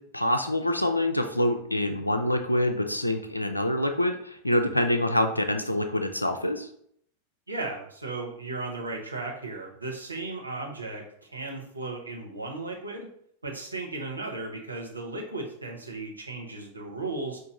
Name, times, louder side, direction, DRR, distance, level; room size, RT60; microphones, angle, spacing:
voice 1, 0.1-6.7, left 1 dB, 85° left, 6 dB, 0.4 m, -26 dB
voice 2, 7.5-13.1 13.4-17.4, right 3 dB, 80° right, 0 dB, 0.9 m, -35 dB
4.6 x 2.5 x 3.8 m, 0.67 s
figure-of-eight pair, 90°, 0 cm